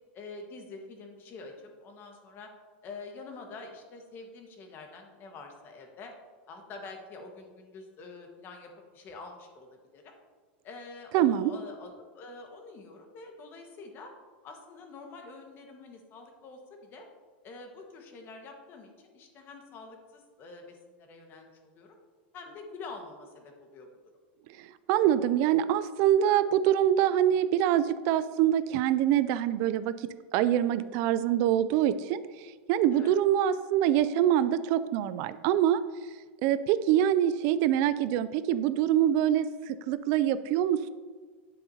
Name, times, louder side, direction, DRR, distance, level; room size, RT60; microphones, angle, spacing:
voice 1, 0.1-2.5 2.8-6.1 6.5-10.1 10.6-14.1 14.4-17.1 17.4-22.0 22.3-23.9 32.9-33.2, left 3 dB, 35° left, 3 dB, 1.5 m, -46 dB
voice 2, 11.1-11.5 24.6-35.8 36.4-40.9, right 11 dB, 50° right, 14 dB, 0.4 m, -25 dB
9.9 x 7.6 x 2.8 m, 1.4 s
supercardioid pair, 135°, 6 cm